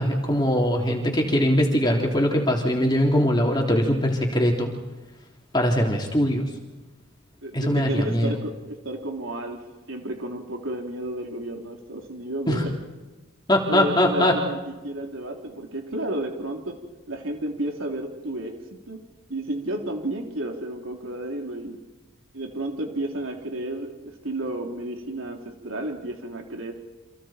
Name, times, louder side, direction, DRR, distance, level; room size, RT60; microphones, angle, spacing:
voice 1, 0.0-4.7 5.5-6.5 7.5-8.4 12.5-12.6 13.5-14.4, equal, 20° left, 0 dB, 3.4 m, -21 dB
voice 2, 7.4-9.6 9.9-12.7 13.7-14.6 14.8-16.8 17.1-19.0 19.3-21.8 22.3-26.7, right 1 dB, 80° right, 1 dB, 3.3 m, -32 dB
30.0 x 27.0 x 4.5 m, 1.2 s
head